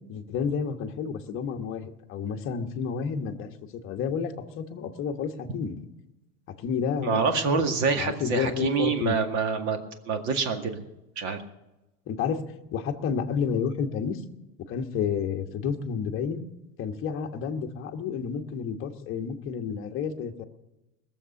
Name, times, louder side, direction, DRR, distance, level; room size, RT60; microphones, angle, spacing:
voice 1, 0.1-5.8 6.6-7.2 7.9-9.1 12.1-12.4 12.7-14.2 14.7-16.5 16.8-20.4, left 6 dB, 30° left, 4 dB, 1.2 m, -30 dB
voice 2, 7.0-9.8 10.1-10.8 11.2-11.4, right 5 dB, 40° right, 6 dB, 2.0 m, -26 dB
20.0 x 7.5 x 7.0 m, 0.97 s
supercardioid pair, 150°, 45 cm